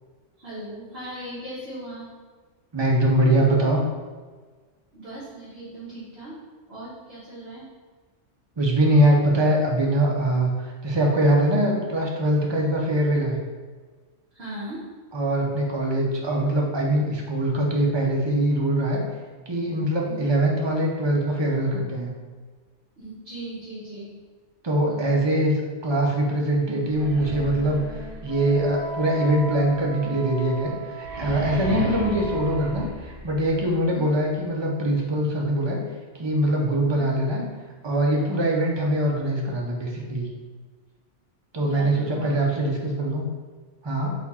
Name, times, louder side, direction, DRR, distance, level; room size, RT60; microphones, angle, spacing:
voice 1, 0.4-2.1 4.9-6.4 6.7-7.6 14.3-14.8 20.0-20.3 23.0-24.1 24.8-25.2 33.9-34.0 36.9-37.0 41.6-42.7, right 1 dB, 60° right, -11 dB, 1.4 m, -38 dB
voice 2, 2.7-3.8 8.6-13.4 15.1-19.0 19.5-22.1 24.6-25.5 25.8-35.8 36.2-37.4 37.8-40.3 41.5-43.3 43.8-44.2, right 1 dB, 35° right, -1 dB, 0.5 m, -23 dB
sound 1, 26.8-33.7, right 2 dB, 90° right, 1.2 m, -36 dB
Wind instrument woodwind instrument, 26.9-33.1, right 2 dB, 35° left, 1.1 m, -37 dB
4.1 x 2.4 x 4.2 m, 1.4 s
omnidirectional pair, 1.2 m